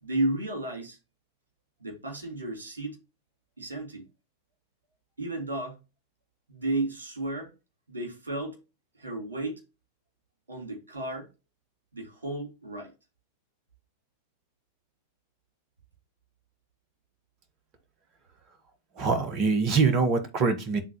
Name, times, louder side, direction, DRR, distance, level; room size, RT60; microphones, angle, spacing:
voice 1, 0.0-1.0 1.8-3.0 3.6-4.1 5.2-5.7 6.5-7.5 7.9-8.6 9.0-9.6 10.5-11.3 11.9-12.9, right 2 dB, 70° right, 3.4 m, -33 dB
voice 2, 19.0-20.8, right 4 dB, 35° right, 1.3 m, -24 dB
9.8 x 3.9 x 3.0 m
figure-of-eight pair, 90°, 0 cm